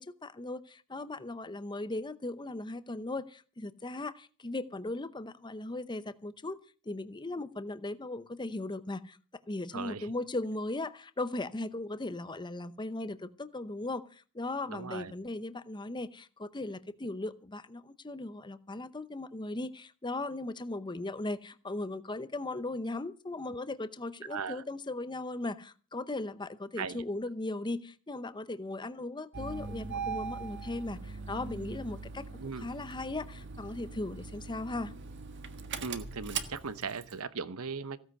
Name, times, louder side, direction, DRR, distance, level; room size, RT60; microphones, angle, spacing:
voice 1, 0.0-6.6 6.9-9.2 9.5-32.3 32.5-34.9, left 2 dB, 20° left, 13 dB, 0.8 m, -38 dB
voice 2, 9.7-10.1 14.7-15.1 24.3-24.6 26.8-27.0 32.4-32.7 35.8-38.0, right 5 dB, 75° right, 15 dB, 0.9 m, -38 dB
Engine starting, 29.3-37.2, right 5 dB, 55° right, 1.5 m, -41 dB
16.0 x 9.6 x 6.6 m, 0.40 s
head